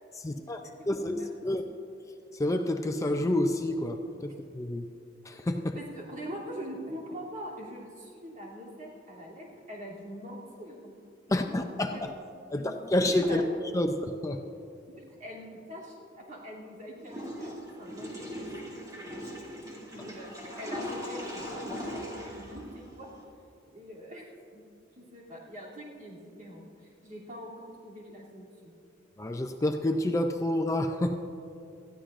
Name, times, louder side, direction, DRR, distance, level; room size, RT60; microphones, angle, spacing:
voice 1, 0.2-1.6 2.3-4.9 5.2-5.8 11.3-12.0 12.5-13.4 13.7-13.9 14.2-14.4 29.2-31.2, left 1 dB, 15° left, 5 dB, 0.4 m, -29 dB
voice 2, 0.8-1.3 1.6-1.7 5.7-10.9 11.2-12.0 12.5-12.7 13.1-13.6 14.9-23.1 23.7-24.6 24.9-28.7, equal, 45° right, -5 dB, 2.8 m, -44 dB
Water / Toilet flush, 17.0-23.2, equal, 20° right, 2.4 m, -39 dB
20.0 x 13.5 x 2.5 m, 2.7 s
head